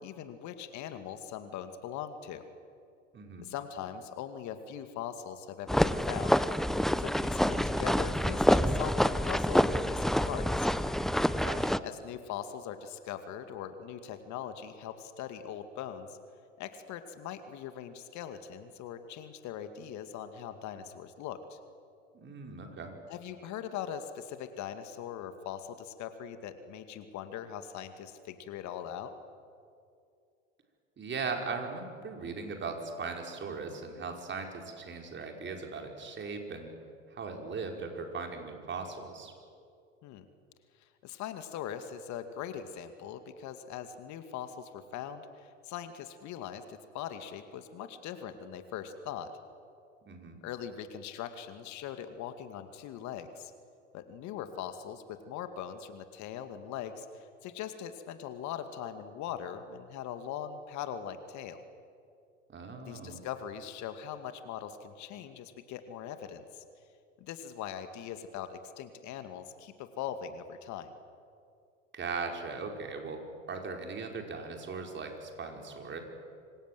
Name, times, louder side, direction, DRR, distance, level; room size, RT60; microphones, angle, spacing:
voice 1, 0.0-2.5 3.4-6.4 7.0-10.7 11.8-16.2 16.6-21.6 23.1-29.1 40.0-40.2 40.8-49.3 50.4-53.5 53.9-61.6 62.8-66.6 67.2-70.9, left 9 dB, 50° left, 9 dB, 2.3 m, -41 dB
voice 2, 3.1-3.4 11.4-11.8 22.1-22.9 31.0-36.7 37.1-39.3 50.1-50.4 62.5-63.2 71.9-76.0, right 4 dB, 30° right, 3 dB, 5.3 m, -39 dB
sound 1, 5.7-11.8, equal, ahead, 0.8 m, -27 dB
26.5 x 26.0 x 7.8 m, 2.4 s
hypercardioid pair, 80°, 37 cm